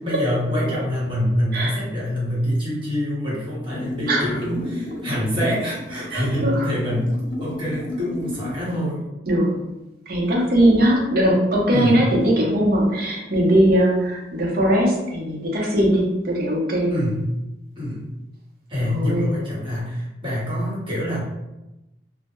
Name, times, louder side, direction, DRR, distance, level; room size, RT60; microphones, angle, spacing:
voice 1, 0.0-9.0 11.7-12.0 16.9-17.3 17.8-18.0 18.7-21.2, equal, 30° right, -8 dB, 1.0 m, -25 dB
sound 1, 3.7-8.8, left 1 dB, 75° left, 0.6 m, -32 dB
voice 2, 6.1-6.6 9.3-9.5 10.1-16.9 18.8-19.3, right 1 dB, 55° right, -3 dB, 0.6 m, -20 dB
2.1 x 2.0 x 2.9 m, 0.97 s
head